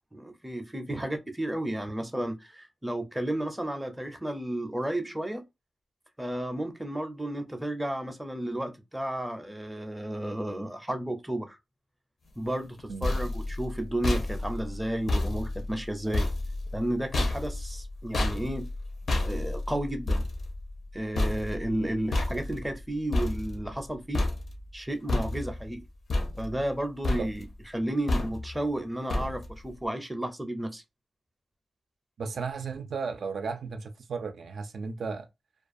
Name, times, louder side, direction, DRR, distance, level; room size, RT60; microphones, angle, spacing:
voice 1, 0.1-5.4 6.2-11.6 12.4-16.3 16.7-18.7 19.2-20.2 20.9-24.3 24.7-25.9 26.4-27.4 27.7-30.8, right 1 dB, 10° right, 0.5 m, -32 dB
sound 1, 12.6-23.9 24.1-24.7 25.1-25.7 26.1-26.8 27.0-27.6 28.1-28.6 29.1-29.6, left 2 dB, 65° left, 0.7 m, -31 dB
voice 2, 32.2-35.3, right 5 dB, 75° right, 0.4 m, -35 dB
2.4 x 2.3 x 2.5 m
wide cardioid pair, 110°, 0 cm